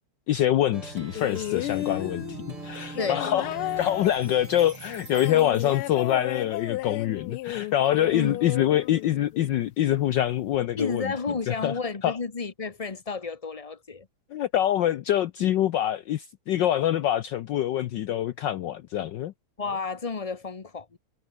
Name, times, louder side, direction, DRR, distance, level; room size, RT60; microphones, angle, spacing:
voice 1, 0.3-2.2 2.6-3.5 3.8-11.0 11.5-11.7 12.0-12.2 14.3-19.3, left 12 dB, 65° left, 1.3 m, -25 dB
Plucked string instrument, 0.7-6.1, right 3 dB, 85° right, 6.9 m, -41 dB
sound 1, 1.1-9.5 10.5-10.6, left 17 dB, 80° left, 1.5 m, -34 dB
voice 2, 3.0-3.3 8.1-8.4 10.8-14.1 19.6-21.0, left 4 dB, 45° left, 0.4 m, -31 dB
omnidirectional pair, 2.4 m